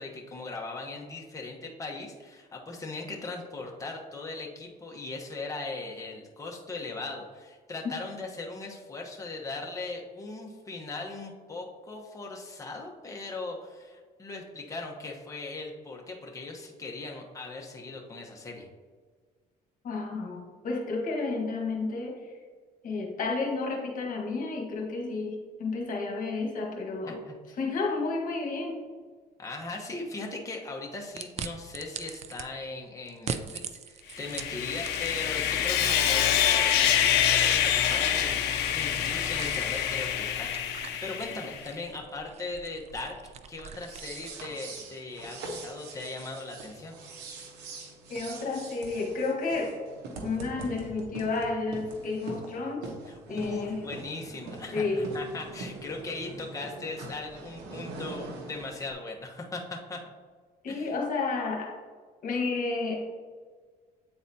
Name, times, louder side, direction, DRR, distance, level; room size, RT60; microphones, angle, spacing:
voice 1, 0.0-18.7 27.1-27.6 29.4-36.9 37.3-47.0 53.1-60.0 60.7-60.9, left 3 dB, 20° left, 0 dB, 1.0 m, -39 dB
voice 2, 19.8-22.3 22.8-27.2 27.6-28.8 48.1-49.8 50.2-52.9 53.3-53.8 54.7-55.1 60.6-61.8 62.2-63.1, left 3 dB, 55° left, 0 dB, 1.4 m, -31 dB
sound 1, 31.2-32.5 33.1-35.4 35.8-44.4, right 7 dB, 40° right, 0.4 m, -42 dB
Sawing, 34.2-41.6, left 10 dB, 85° left, 0.5 m, -26 dB
sound 2, 43.7-58.9, right 3 dB, 90° right, 0.9 m, -43 dB
8.7 x 4.0 x 2.7 m, 1.5 s
cardioid pair, 110°, 17 cm